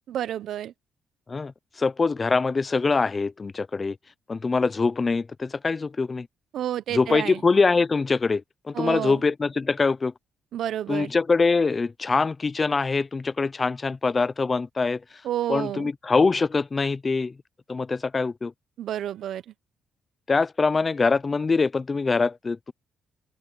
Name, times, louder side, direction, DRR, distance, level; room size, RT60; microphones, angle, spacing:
voice 1, 0.1-0.7 6.5-7.4 8.7-9.2 10.5-11.1 15.2-15.9 18.8-19.5, right 11 dB, 75° right, 0.8 m, -30 dB
voice 2, 1.3-4.0 4.3-6.3 6.9-10.1 10.9-15.0 15.5-17.3 17.7-18.5 20.3-22.7, left 4 dB, 30° left, 0.7 m, -24 dB
open air
cardioid pair, 90°, 0 cm